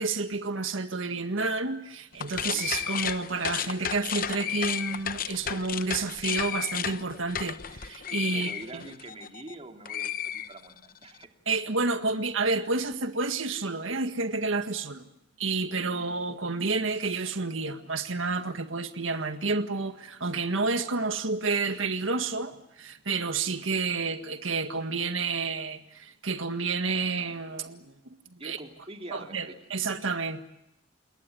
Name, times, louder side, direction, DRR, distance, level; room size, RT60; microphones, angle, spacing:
voice 1, 0.0-8.8 11.5-15.1 15.4-27.9 28.3-28.6 29.1-30.4, right 3 dB, 90° right, 1.8 m, -30 dB
sound 1, 2.1-9.5 9.8-11.0, left 9 dB, 45° left, 0.9 m, -33 dB
voice 2, 8.3-11.3 28.4-29.8, right 2 dB, 30° right, 2.7 m, -45 dB
28.5 x 21.0 x 7.8 m
head